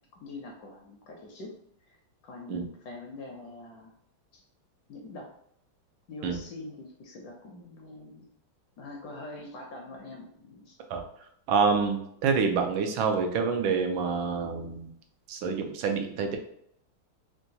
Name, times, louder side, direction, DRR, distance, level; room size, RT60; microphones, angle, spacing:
voice 1, 0.1-1.5 1.9-2.0 2.2-3.9 4.3-4.4 4.9-5.3 6.1-8.3 8.8-10.8, left 2 dB, 75° left, 0 dB, 1.0 m, -44 dB
voice 2, 11.5-14.9 15.3-16.4, right 5 dB, 85° right, 4 dB, 1.4 m, -27 dB
3.8 x 2.2 x 2.7 m, 0.71 s
omnidirectional pair, 2.1 m